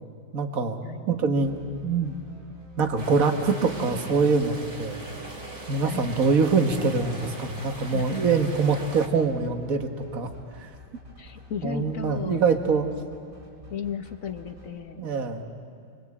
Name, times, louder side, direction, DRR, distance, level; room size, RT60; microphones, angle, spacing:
voice 1, 0.3-0.8 1.1-1.5 1.8-2.1 2.8-5.0 5.7-10.3 10.6-10.7 11.6-12.9 15.0-15.5, right 4 dB, 45° right, 6 dB, 1.9 m, -24 dB
sound 1, 1.4-14.7, left 1 dB, 60° right, 6.3 m, -48 dB
sound 2, 2.9-9.1, right 2 dB, 25° right, 2.1 m, -40 dB
voice 2, 7.8-8.2 11.2-12.4 13.7-15.0, left 7 dB, 50° left, 7 dB, 1.3 m, -35 dB
30.0 x 23.0 x 8.6 m, 2.2 s
omnidirectional pair, 2.2 m